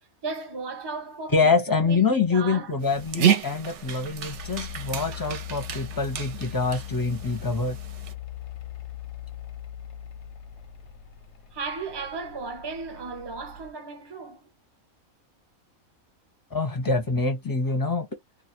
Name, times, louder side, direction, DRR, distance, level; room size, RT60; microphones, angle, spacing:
voice 1, 0.2-2.8 11.5-14.5, right 4 dB, 40° right, 0.3 m, -35 dB
voice 2, 1.3-7.8 16.5-18.1, left 4 dB, 20° left, 0.5 m, -25 dB
Mechanical fan, 2.4-13.7, left 11 dB, 65° left, 0.7 m, -41 dB
Dog, 2.8-8.1, right 9 dB, 65° right, 0.8 m, -30 dB
2.5 x 2.2 x 2.8 m
omnidirectional pair, 1.5 m